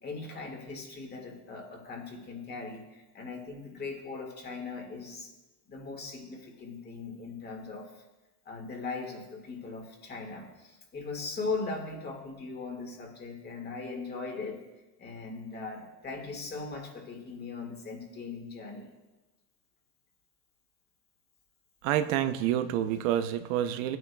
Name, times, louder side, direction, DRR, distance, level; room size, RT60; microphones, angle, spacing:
voice 1, 0.0-5.3 5.7-8.0 8.5-14.6 15.0-18.9, left 4 dB, 25° left, 1 dB, 1.9 m, -39 dB
voice 2, 21.8-24.0, right 11 dB, 85° right, 9 dB, 0.7 m, -28 dB
17.0 x 9.2 x 2.3 m, 1.1 s
cardioid pair, 140°, 39 cm